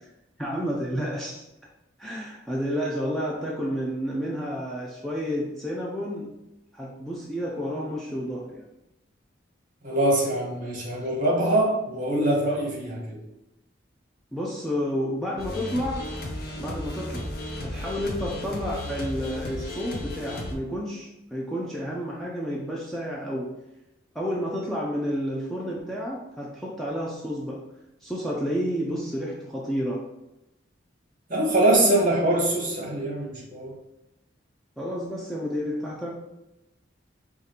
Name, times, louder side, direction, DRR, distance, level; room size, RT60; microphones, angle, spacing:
voice 1, 0.4-1.4 2.0-6.3 6.7-8.7 14.3-16.0 16.6-17.3 17.6-23.5 24.1-27.6 28.0-30.0 34.8-36.1, equal, ahead, -5 dB, 0.3 m, -30 dB
voice 2, 9.8-13.2 31.3-33.7, right 1 dB, 40° right, -2 dB, 0.9 m, -23 dB
sound 1, 15.4-20.5, left 1 dB, 50° left, 0.6 m, -34 dB
4.9 x 2.4 x 2.8 m, 0.93 s
head